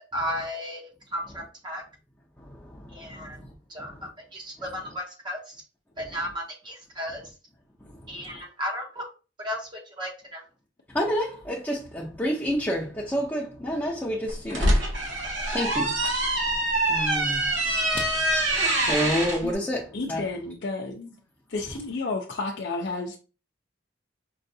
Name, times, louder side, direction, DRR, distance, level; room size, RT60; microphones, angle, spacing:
voice 1, 0.1-1.8 2.9-3.4 3.7-5.6 6.0-7.2 8.1-9.0 9.4-10.4, equal, 25° right, 0.8 m, -34 dB
voice 2, 2.4-3.5 3.8-4.1 6.0-6.2 7.8-8.4 10.9-20.3, equal, 10° left, 0.6 m, -31 dB
sound 1, 14.3-19.4, right 1 dB, 75° right, 1.5 m, -25 dB
voice 3, 19.9-21.1 21.5-23.2, left 3 dB, 65° left, 0.6 m, -31 dB
5.4 x 2.5 x 2.7 m
head